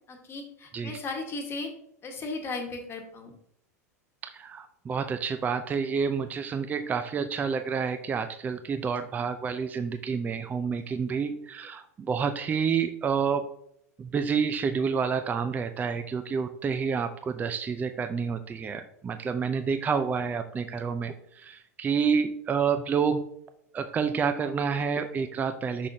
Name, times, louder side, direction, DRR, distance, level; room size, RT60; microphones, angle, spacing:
voice 1, 0.1-1.7 2.0-3.3, left 3 dB, 25° left, 3 dB, 1.4 m, -36 dB
voice 2, 4.2-13.5 14.0-23.3 23.7-25.9, right 6 dB, 20° right, 9 dB, 0.4 m, -29 dB
6.0 x 5.7 x 2.7 m, 0.72 s
figure-of-eight pair, 90°, 9 cm